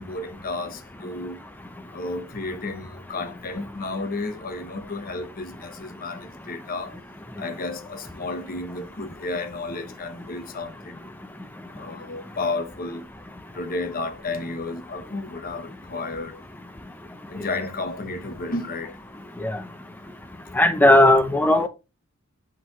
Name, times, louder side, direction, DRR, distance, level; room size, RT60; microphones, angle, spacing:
voice 1, 0.0-1.4 1.9-7.0 7.4-11.0 11.7-13.0 13.5-16.4 17.3-19.0, left 3 dB, 45° left, 1.0 m, -32 dB
voice 2, 20.6-21.7, left 1 dB, 10° left, 0.6 m, -16 dB
8.2 x 3.9 x 3.1 m
head